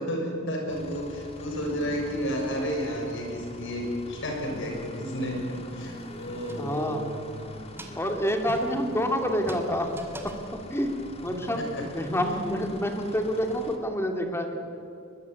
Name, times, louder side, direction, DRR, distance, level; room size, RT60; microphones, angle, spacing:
voice 1, 0.0-7.0 11.4-11.9, equal, 65° left, 2 dB, 6.7 m, -31 dB
sound 1, 0.7-13.8, left 1 dB, 30° left, 2.4 m, -44 dB
sound 2, 5.8-7.2 7.6-11.0, right 1 dB, 10° right, 2.6 m, -44 dB
voice 2, 6.5-7.0 7.9-9.9 10.2-10.4 10.7-11.0 11.2-11.6 11.9-14.6, equal, 10° left, 4 dB, 2.6 m, -28 dB
23.0 x 22.0 x 9.7 m, 2.8 s
head